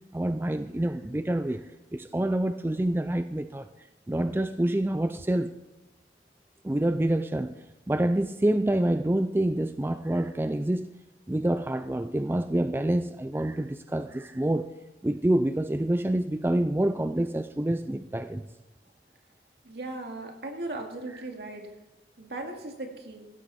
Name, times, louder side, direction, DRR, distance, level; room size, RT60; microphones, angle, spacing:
voice 1, 0.1-1.7 1.9-3.7 4.1-5.5 6.6-7.5 7.9-10.9 11.3-14.7 15.0-18.4, right 1 dB, 15° right, 0.4 m, -27 dB
voice 2, 19.6-21.6 22.2-23.3, right 2 dB, 65° right, 2.3 m, -37 dB
16.5 x 13.0 x 4.3 m
head